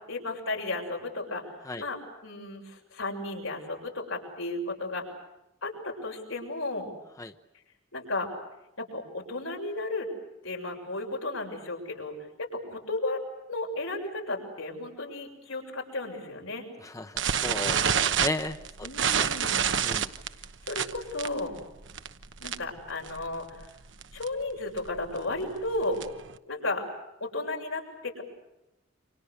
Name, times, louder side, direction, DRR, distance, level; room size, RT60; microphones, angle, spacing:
voice 1, 0.1-1.4 1.8-5.0 5.6-6.9 7.9-8.3 8.8-10.1 10.4-13.2 13.5-16.7 18.8-19.7 20.7-21.5 22.4-23.7 24.1-26.0 26.5-26.8 27.2-28.2, left 2 dB, 85° left, 1 dB, 7.0 m, -34 dB
voice 2, 16.8-18.9 19.1-19.3 19.8-20.1, left 2 dB, 15° left, 8 dB, 0.9 m, -35 dB
sound 1, 17.2-22.8 23.1-23.3 23.6-23.7 24.0-24.3 24.8-26.3, right 8 dB, 65° right, 1.1 m, -28 dB
28.5 x 26.5 x 6.6 m, 0.90 s
head